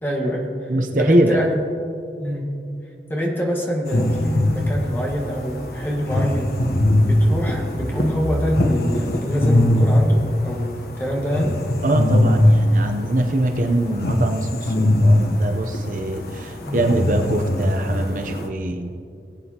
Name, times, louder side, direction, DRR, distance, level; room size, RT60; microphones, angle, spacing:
voice 1, 0.0-0.7 1.0-1.6 2.2-2.5 3.1-6.6 7.1-11.6 16.7-16.8, equal, 10° left, -2 dB, 1.5 m, -25 dB
voice 2, 0.7-1.4 11.8-19.0, right 1 dB, 45° right, 4 dB, 0.7 m, -23 dB
sound 1, 3.9-12.6 12.9-18.5, left 1 dB, 60° left, 0.9 m, -20 dB
19.5 x 8.5 x 2.9 m, 2.5 s
head